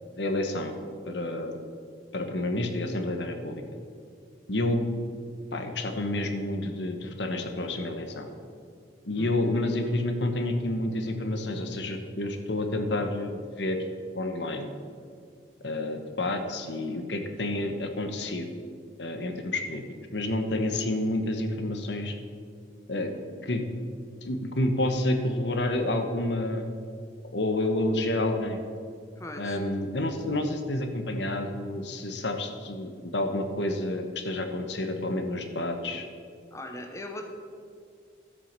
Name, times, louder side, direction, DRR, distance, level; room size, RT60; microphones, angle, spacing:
voice 1, 0.2-0.7 1.1-1.7 2.1-3.6 4.5-4.9 5.5-8.3 9.0-13.9 14.1-14.7 15.6-18.5 19.0-19.8 20.1-22.1 22.9-23.1 23.4-23.6 24.2-26.7 27.3-28.6 29.4-36.1, left 1 dB, 75° left, 6 dB, 1.3 m, -29 dB
voice 2, 29.2-29.6 36.5-37.3, left 1 dB, 15° left, 3 dB, 1.1 m, -39 dB
12.5 x 8.0 x 6.8 m, 2.3 s
head